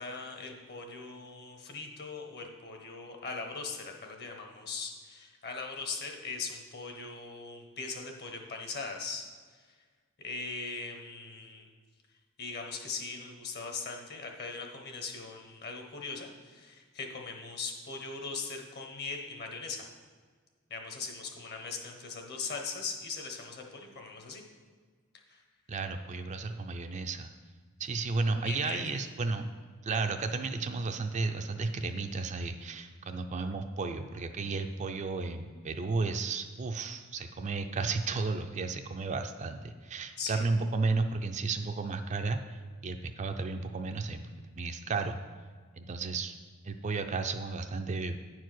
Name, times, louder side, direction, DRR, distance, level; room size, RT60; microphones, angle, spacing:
voice 1, 0.0-9.3 10.2-11.7 12.4-19.8 20.7-24.4 25.3-25.4 28.4-28.8 40.2-40.5, left 4 dB, 50° left, 3 dB, 1.2 m, -40 dB
voice 2, 25.7-27.3 27.8-29.4 29.8-42.4 42.8-44.3 44.5-45.2 45.7-46.4 46.6-48.2, right 3 dB, 35° right, 6 dB, 0.4 m, -33 dB
9.6 x 4.7 x 6.1 m, 1.5 s
head